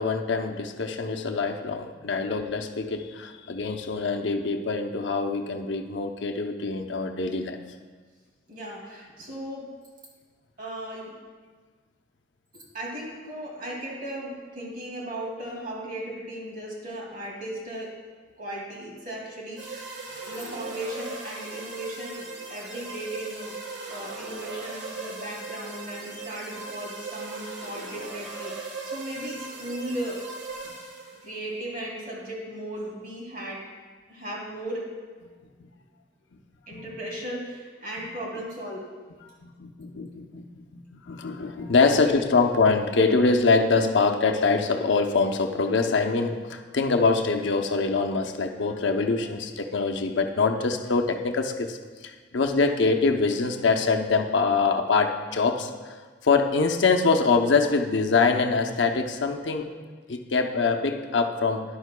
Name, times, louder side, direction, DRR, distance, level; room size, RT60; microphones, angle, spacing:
voice 1, 0.0-7.6 30.6-30.7 35.6-35.7 36.7-36.9 39.4-51.8 52.0-55.9 56.2-59.7 60.1-61.6, left 4 dB, 90° left, 5 dB, 0.7 m, -24 dB
voice 2, 8.5-9.7 10.6-11.2 12.5-18.0 18.4-19.9 20.2-23.6 23.9-30.2 31.2-33.7 34.1-34.9 36.7-38.9 41.9-42.0, right 1 dB, 50° right, -2 dB, 2.3 m, -36 dB
sound 1, 19.6-31.3, right 3 dB, 85° right, 1.6 m, -38 dB
13.0 x 10.5 x 2.2 m, 1.4 s
head